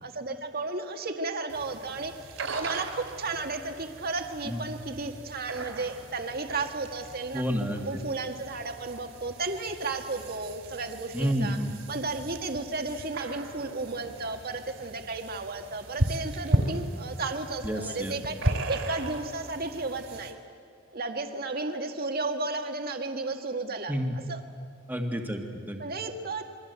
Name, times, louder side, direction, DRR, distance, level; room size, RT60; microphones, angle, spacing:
voice 1, 0.0-2.1 2.5-7.4 7.9-11.6 11.9-20.4 20.9-23.9 24.3-24.4 25.8-26.6, right 3 dB, 50° right, 5 dB, 1.8 m, -33 dB
sound 1, 1.5-20.3, right 1 dB, 70° right, 3.3 m, -36 dB
voice 2, 7.3-7.9 11.1-11.7 17.6-18.4 23.9-24.1 24.9-25.8, equal, 10° right, 2 dB, 2.0 m, -30 dB
27.5 x 22.5 x 8.2 m, 2.2 s
head